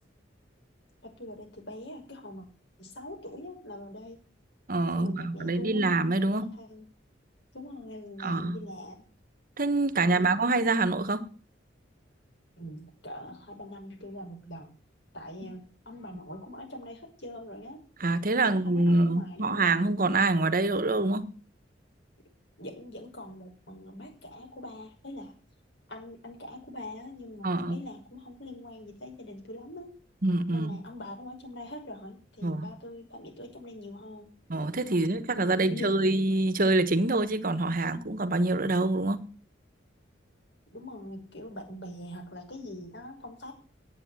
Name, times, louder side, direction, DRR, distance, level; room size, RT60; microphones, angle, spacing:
voice 1, 1.0-2.5 2.8-4.2 4.9-5.9 6.3-6.9 7.5-9.0 9.9-10.3 12.6-14.7 15.1-17.8 18.4-19.8 22.6-25.3 25.9-30.0 30.5-34.3 35.5-36.2 40.7-43.5, left 1 dB, 75° left, 5.5 m, -43 dB
voice 2, 4.7-6.5 8.2-8.6 9.6-11.3 18.0-21.3 27.4-27.8 30.2-30.8 32.4-32.7 34.5-39.3, right 2 dB, 50° right, 1.2 m, -26 dB
10.0 x 9.0 x 9.5 m
head